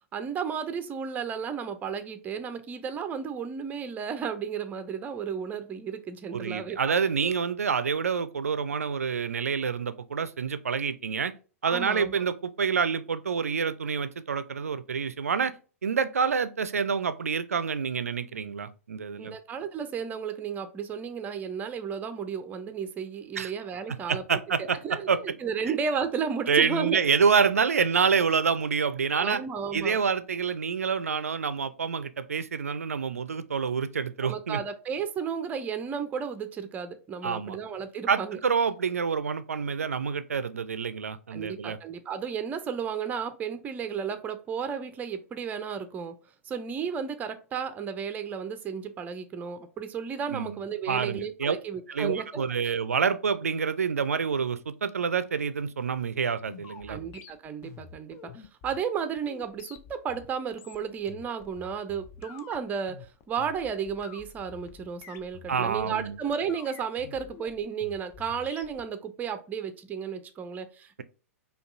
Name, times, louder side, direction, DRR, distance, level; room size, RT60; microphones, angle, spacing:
voice 1, 0.1-7.0 11.6-12.2 19.2-24.2 24.6-27.0 29.2-30.0 34.2-38.4 41.3-46.2 46.5-52.8 56.9-71.0, right 7 dB, 20° right, 0.5 m, -33 dB
voice 2, 6.3-11.3 11.6-15.5 15.8-19.3 23.4-23.5 24.1-25.2 26.5-29.4 29.7-34.6 37.2-37.6 38.1-41.8 50.3-50.6 50.9-51.6 51.9-57.0 65.5-66.1, right 6 dB, 80° right, 0.4 m, -27 dB
sound 1, 56.0-68.8, left 7 dB, 35° left, 0.5 m, -48 dB
5.2 x 2.3 x 2.5 m
figure-of-eight pair, 105°, 8 cm